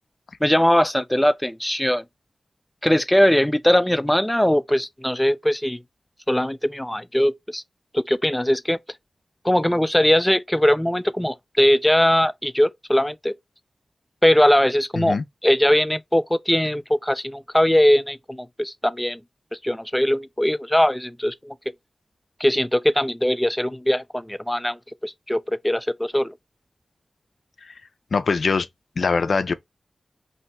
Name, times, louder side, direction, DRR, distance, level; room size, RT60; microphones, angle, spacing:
voice 1, 0.4-2.0 2.8-5.8 6.3-7.6 7.9-8.8 9.4-13.3 14.2-19.2 19.6-21.5 22.4-26.3, left 1 dB, 10° left, 0.3 m, -20 dB
voice 2, 28.1-28.7 29.0-29.5, left 4 dB, 75° left, 0.4 m, -22 dB
2.7 x 2.2 x 3.9 m
wide cardioid pair, 60°, 0 cm